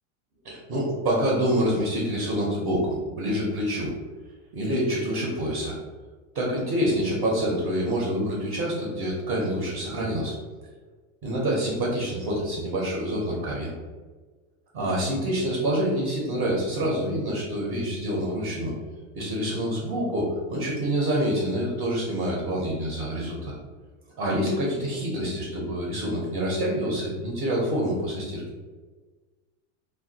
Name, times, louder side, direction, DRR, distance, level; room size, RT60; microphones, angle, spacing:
voice 1, 0.4-3.9 4.5-5.8 6.3-10.3 11.2-13.7 14.7-18.7 19.1-23.5 24.2-28.4, equal, 25° right, -3 dB, 0.6 m, -27 dB
2.5 x 2.2 x 3.9 m, 1.4 s
supercardioid pair, 155°, 39 cm